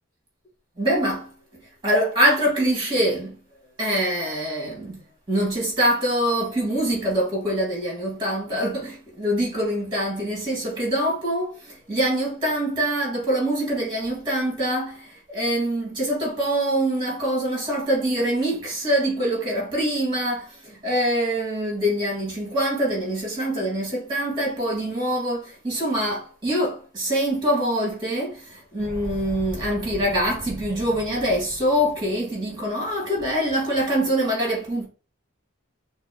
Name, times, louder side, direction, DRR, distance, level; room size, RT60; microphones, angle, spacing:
voice 1, 0.8-1.3 1.8-3.4 3.8-5.0 5.3-34.9, equal, 20° right, 2.3 m, -24 dB
sound 1, 28.8-32.3, equal, 5° left, 0.9 m, -38 dB
6.3 x 2.3 x 3.1 m
head